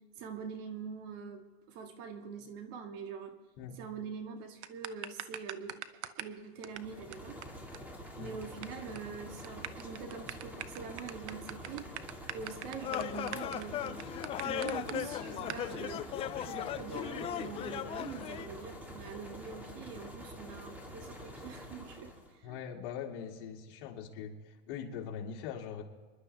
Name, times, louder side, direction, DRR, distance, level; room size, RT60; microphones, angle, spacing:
voice 1, 0.0-3.4 3.8-5.8 6.0-7.4 8.2-11.9 12.3-14.1 14.4-16.1 16.4-22.6, right 6 dB, 55° right, 5 dB, 1.9 m, -44 dB
sound 1, 4.6-6.4 6.6-6.8 7.1-7.2 7.4-7.5 7.7-7.8 8.1-8.7 9.0-9.1 9.4-14.9 15.5-15.6, right 12 dB, 85° right, 0.9 m, -41 dB
sound 2, 6.6-22.4, equal, 5° right, 2.0 m, -47 dB
sound 3, 12.8-18.5, left 10 dB, 20° left, 0.3 m, -37 dB
voice 2, 22.4-25.8, left 7 dB, 55° left, 0 dB, 2.4 m, -42 dB
26.0 x 11.5 x 3.4 m, 1.3 s
supercardioid pair, 145°, 33 cm